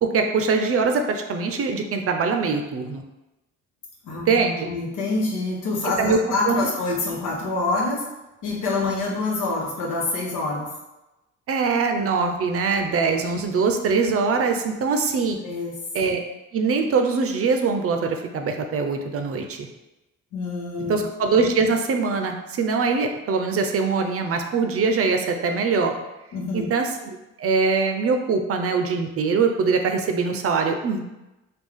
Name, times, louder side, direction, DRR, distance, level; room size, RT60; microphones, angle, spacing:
voice 1, 0.0-3.0 4.1-4.7 6.0-6.2 6.4-6.7 11.5-15.4 15.9-16.2 16.5-19.7 20.9-25.9 26.5-26.9 27.4-31.1, right 4 dB, 50° right, 5 dB, 0.5 m, -22 dB
voice 2, 4.0-8.0 8.4-10.7 15.4-15.7 20.3-21.0 26.3-26.7, left 3 dB, 90° left, -3 dB, 1.0 m, -26 dB
3.5 x 2.3 x 3.5 m, 0.99 s
cardioid pair, 90°, 30 cm